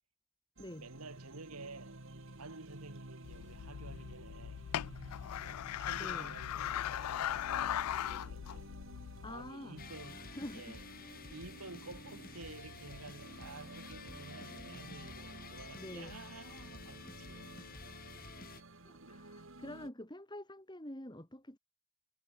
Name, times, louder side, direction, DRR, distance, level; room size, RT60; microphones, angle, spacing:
sound 1, 0.6-19.9, right 2 dB, 60° right, 2.3 m, -53 dB
voice 1, 0.7-2.0 2.4-4.6 5.4-7.1 8.1-8.8 9.2-10.9 11.3-17.9 19.0-19.3, right 3 dB, 80° right, 2.8 m, -52 dB
sound 2, 3.2-9.5, left 11 dB, 80° left, 0.3 m, -39 dB
voice 2, 5.9-6.4 9.2-9.8 10.1-10.8 15.7-16.2 18.8-21.6, left 1 dB, 20° left, 3.3 m, -47 dB
sound 3, 9.8-18.6, left 3 dB, 40° left, 6.2 m, -50 dB
head